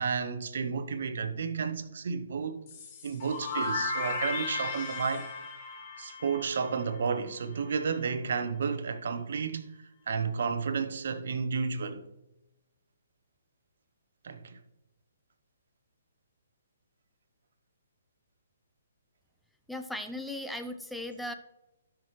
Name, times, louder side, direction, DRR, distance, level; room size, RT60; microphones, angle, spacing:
voice 1, 0.0-2.6 3.0-5.3 6.0-9.7 10.1-12.0 14.2-14.6, right 5 dB, 65° right, 0.9 m, -32 dB
sound 1, 2.7-7.4, left 3 dB, 40° left, 1.8 m, -36 dB
voice 2, 19.7-21.3, left 1 dB, ahead, 0.6 m, -37 dB
12.5 x 5.9 x 3.2 m
hypercardioid pair, 145°, 0 cm